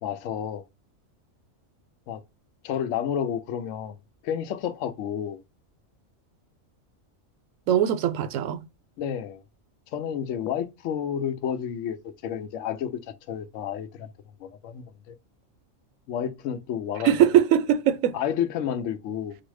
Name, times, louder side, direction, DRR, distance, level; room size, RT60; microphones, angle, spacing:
voice 1, 0.0-0.7 2.1-2.2 2.6-4.0 4.2-5.4 9.0-9.4 9.9-14.1 14.4-15.2 16.1-17.4 18.1-19.4, left 9 dB, 70° left, 0.9 m, -31 dB
voice 2, 7.7-8.6 17.0-18.2, right 10 dB, 80° right, 1.0 m, -21 dB
4.8 x 2.0 x 4.7 m
omnidirectional pair, 1.4 m